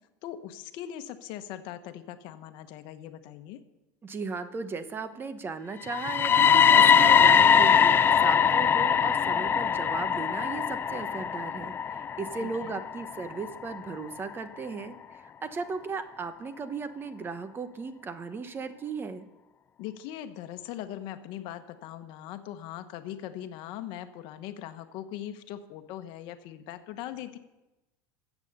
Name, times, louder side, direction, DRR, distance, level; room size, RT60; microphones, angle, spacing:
voice 1, 0.2-3.6 12.4-12.8 19.8-27.4, left 11 dB, 65° left, 9 dB, 1.2 m, -40 dB
voice 2, 4.0-19.3, right 4 dB, 25° right, 11 dB, 0.9 m, -36 dB
sound 1, 5.9-13.8, left 7 dB, 25° left, 0.4 m, -22 dB
14.5 x 8.4 x 6.8 m, 0.99 s
supercardioid pair, 125°, 9 cm